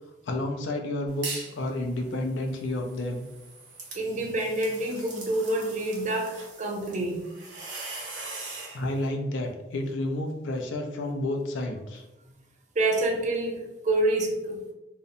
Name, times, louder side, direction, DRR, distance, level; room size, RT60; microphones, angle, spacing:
voice 1, 0.3-3.3 8.7-12.0, left 1 dB, 80° left, 3 dB, 0.4 m, -30 dB
sound 1, 1.1-1.6 2.0-8.8, right 3 dB, 75° right, 0.7 m, -41 dB
voice 2, 3.9-7.2 12.8-14.7, right 2 dB, 40° right, 1 dB, 0.4 m, -27 dB
2.7 x 2.0 x 2.5 m, 0.96 s
head